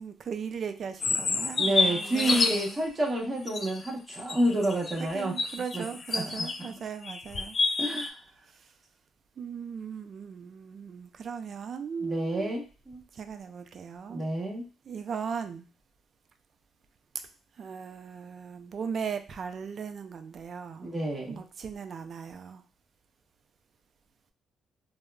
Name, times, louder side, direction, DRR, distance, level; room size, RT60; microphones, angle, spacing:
voice 1, 0.0-2.8 5.0-7.6 8.5-8.7 9.4-12.6 13.1-14.2 14.9-15.7 17.6-20.9 21.3-22.6, right 6 dB, 55° right, 8 dB, 0.3 m, -38 dB
sound 1, 1.0-2.8 3.5-6.7 7.0-8.1, left 3 dB, 45° left, 0.3 m, -29 dB
voice 2, 1.6-5.4 5.7-5.8 6.1-6.7 7.8-8.2 12.0-13.0 14.1-14.6 20.8-21.4, right 1 dB, 20° right, -2 dB, 0.9 m, -29 dB
3.5 x 2.0 x 2.2 m, 0.33 s
cardioid pair, 90°, 0 cm